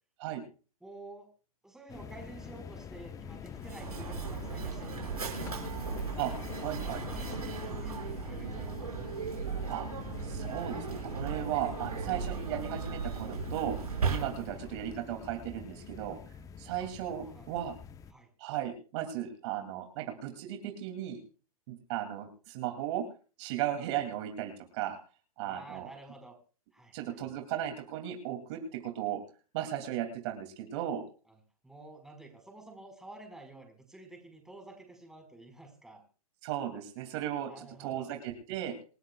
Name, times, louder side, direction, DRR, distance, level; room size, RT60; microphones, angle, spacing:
voice 1, 0.8-1.3 1.6-5.6 7.0-8.8 14.5-14.6 16.8-16.9 17.2-17.5 18.1-18.3 25.4-26.3 26.7-27.2 31.6-36.0 37.4-38.1, right 2 dB, 5° right, 3 dB, 4.8 m, -50 dB
sound 1, 1.9-18.1, left 7 dB, 20° left, 0.9 m, -45 dB
Mechanisms, 3.6-14.7, right 5 dB, 85° right, 5.8 m, -37 dB
voice 2, 6.6-7.0 9.7-9.9 10.2-13.8 14.1-16.2 16.6-17.7 18.4-21.2 21.7-23.1 23.4-25.0 25.4-25.9 26.9-29.2 29.5-31.0 36.4-38.8, right 11 dB, 50° right, 4 dB, 2.7 m, -36 dB
27.5 x 13.0 x 2.4 m, 0.37 s
hypercardioid pair, 120°, 19 cm